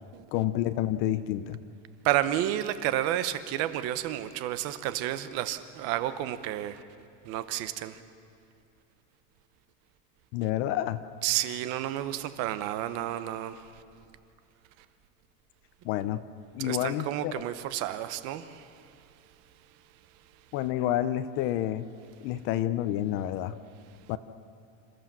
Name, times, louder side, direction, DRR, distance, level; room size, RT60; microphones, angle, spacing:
voice 1, 0.3-1.6 10.3-11.0 15.8-16.2 16.5-17.3 20.5-21.9 22.2-23.6 24.1-24.2, left 12 dB, 35° left, 13 dB, 0.5 m, -29 dB
voice 2, 2.0-6.8 7.2-8.0 11.2-13.6 16.6-18.7, right 13 dB, 40° right, 12 dB, 0.9 m, -31 dB
28.0 x 14.0 x 7.5 m, 2.6 s
cardioid pair, 180°, 37 cm